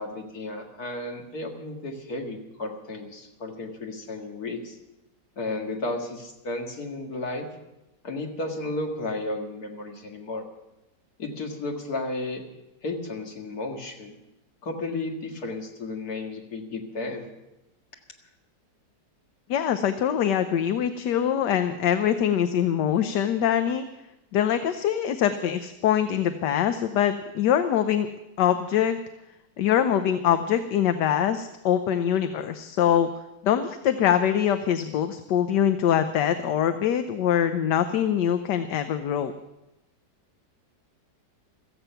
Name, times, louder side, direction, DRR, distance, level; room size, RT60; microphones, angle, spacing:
voice 1, 0.0-4.8 5.4-7.5 8.0-10.4 11.2-12.4 12.8-14.2 14.6-17.3, left 2 dB, 55° left, 2 dB, 2.4 m, -33 dB
voice 2, 19.5-23.8 24.3-28.1 28.4-29.0 29.6-33.1 33.4-39.3, left 9 dB, 75° left, 9 dB, 1.3 m, -23 dB
16.0 x 14.0 x 5.7 m, 0.95 s
omnidirectional pair, 1.9 m